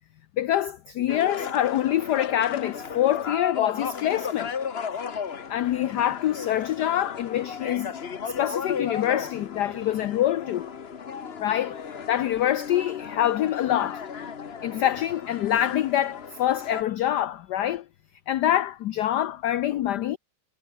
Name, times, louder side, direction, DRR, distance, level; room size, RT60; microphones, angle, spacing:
voice 1, 0.4-4.5 5.5-8.0 8.3-10.7 11.4-11.8 12.1-14.0 14.6-17.8 18.3-20.2, left 12 dB, 70° left, 1.0 m, -25 dB
sound 1, 1.1-16.8, left 6 dB, 40° left, 1.0 m, -35 dB
omnidirectional pair, 2.4 m